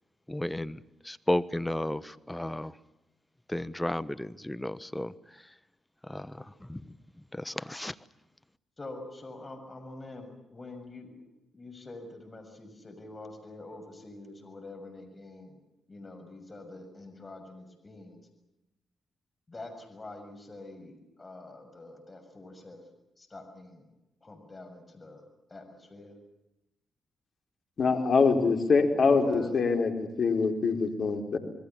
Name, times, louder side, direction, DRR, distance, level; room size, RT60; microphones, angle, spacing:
voice 1, 0.3-0.8 1.0-2.7 3.5-5.1 6.1-6.4 6.7-6.8 7.3-7.9, left 1 dB, 10° left, 14 dB, 1.2 m, -33 dB
voice 2, 8.8-15.6 15.9-18.2 19.5-22.9 23.2-23.9 24.2-25.2 25.5-26.1 29.1-29.5, left 2 dB, 35° left, 6 dB, 6.9 m, -46 dB
voice 3, 27.8-31.4, left 4 dB, 55° left, 4 dB, 4.4 m, -24 dB
27.5 x 21.5 x 7.3 m, 0.92 s
hypercardioid pair, 45°, 0 cm